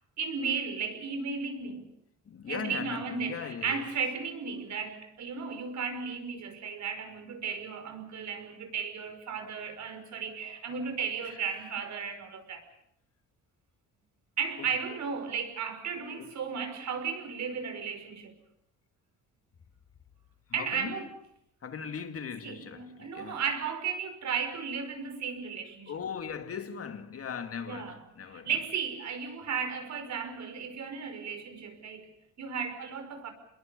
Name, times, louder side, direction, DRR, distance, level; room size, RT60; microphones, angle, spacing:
voice 1, 0.2-1.9 2.4-12.7 14.4-18.3 20.5-21.1 22.4-25.9 27.7-28.0 28.3-33.3, right 6 dB, 65° right, 5.3 m, -35 dB
voice 2, 2.2-3.9 11.2-11.5 14.6-14.7 15.9-16.3 20.5-21.1 21.6-23.4 25.9-28.5, left 7 dB, 50° left, 2.5 m, -39 dB
27.5 x 21.5 x 6.9 m
cardioid pair, 90°, 30 cm